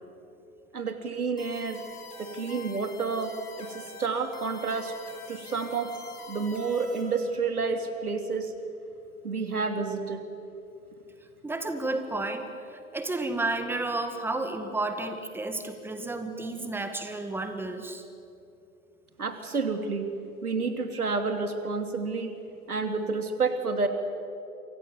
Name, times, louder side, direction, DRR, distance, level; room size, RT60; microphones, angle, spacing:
voice 1, 0.7-1.8 2.2-3.3 3.6-4.9 5.3-5.9 6.3-8.5 9.2-10.2 19.2-20.1 20.4-22.3 22.7-23.9, right 4 dB, 85° right, 6 dB, 3.0 m, -29 dB
sound 1, 1.4-7.3, left 3 dB, 85° left, 4.5 m, -46 dB
voice 2, 11.4-18.0, right 2 dB, 5° right, 7 dB, 2.0 m, -32 dB
28.5 x 25.0 x 7.1 m, 2.8 s
figure-of-eight pair, 110°, 43 cm